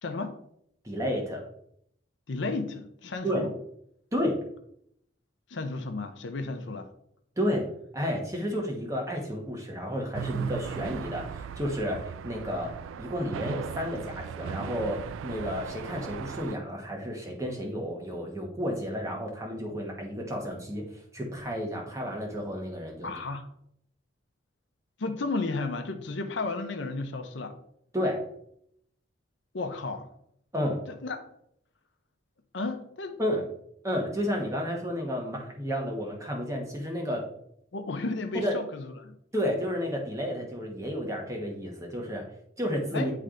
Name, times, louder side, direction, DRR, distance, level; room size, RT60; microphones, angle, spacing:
voice 1, 0.0-0.4 2.3-3.5 5.5-6.9 23.0-23.5 25.0-27.6 29.5-30.1 30.9-31.2 32.5-33.2 37.7-39.2 42.9-43.1, left 3 dB, 70° left, 0.7 m, -33 dB
voice 2, 0.8-1.4 3.2-3.5 4.1-4.4 7.4-7.7 7.9-23.1 27.9-28.2 30.5-30.8 33.2-33.4 33.8-37.2 38.3-38.6 39.3-42.2 42.6-43.1, equal, 15° right, 1.2 m, -31 dB
sound 1, 10.1-16.5, right 7 dB, 90° right, 0.3 m, -37 dB
9.7 x 3.3 x 3.8 m
head